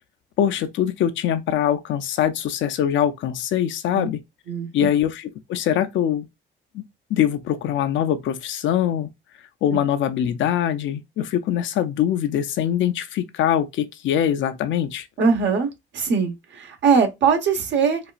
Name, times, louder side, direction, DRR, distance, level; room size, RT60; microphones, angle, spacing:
voice 1, 0.4-4.2 4.7-6.3 6.7-6.8 7.1-9.1 9.6-15.1, left 10 dB, 75° left, 0.5 m, -23 dB
voice 2, 15.2-15.7 15.9-18.0, right 5 dB, 65° right, 1.1 m, -21 dB
4.0 x 2.4 x 2.4 m
cardioid pair, 90°, 20 cm